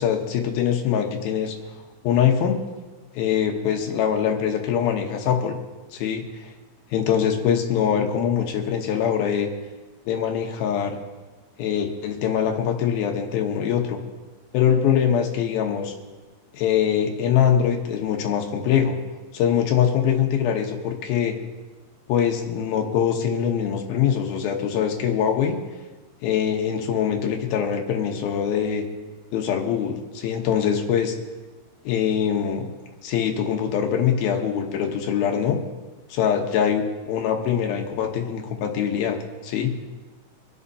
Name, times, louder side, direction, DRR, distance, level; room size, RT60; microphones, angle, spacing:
voice 1, 0.0-1.6 2.0-2.6 3.2-5.5 5.9-6.5 6.9-9.5 10.1-11.0 11.6-14.0 14.5-15.9 16.5-19.0 19.3-21.3 22.1-25.6 26.2-28.8 29.3-31.1 31.9-32.7 33.0-35.6 36.1-39.2 39.4-39.7, left 8 dB, 70° left, 3 dB, 2.6 m, -23 dB
25.5 x 11.5 x 2.8 m, 1.3 s
omnidirectional pair, 5.1 m